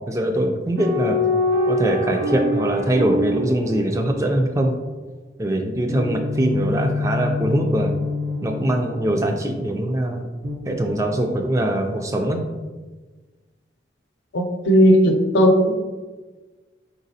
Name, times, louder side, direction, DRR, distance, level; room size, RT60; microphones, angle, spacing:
voice 1, 0.1-1.2 1.7-4.7 5.4-7.9 8.4-10.3 10.7-12.4, right 1 dB, 15° right, 3 dB, 0.3 m, -22 dB
sound 1, 0.8-4.5 5.9-9.6 10.4-11.7, left 2 dB, 75° right, 0.6 m, -25 dB
voice 2, 14.3-15.8, equal, 85° left, 3 dB, 0.7 m, -16 dB
4.2 x 4.0 x 2.7 m, 1.3 s
head